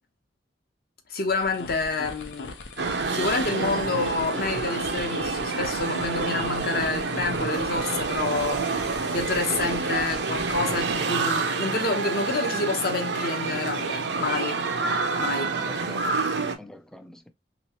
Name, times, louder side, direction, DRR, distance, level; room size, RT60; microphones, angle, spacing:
voice 1, 1.1-2.6 3.1-14.6 15.2-15.5, left 3 dB, 55° left, 0.8 m, -28 dB
sound 1, 1.2-11.1, left 2 dB, 85° left, 0.7 m, -40 dB
sound 2, 2.8-16.5, right 4 dB, 75° right, 0.6 m, -28 dB
voice 2, 14.8-16.1 16.6-17.3, left 1 dB, 5° left, 0.3 m, -45 dB
3.3 x 3.0 x 2.9 m
head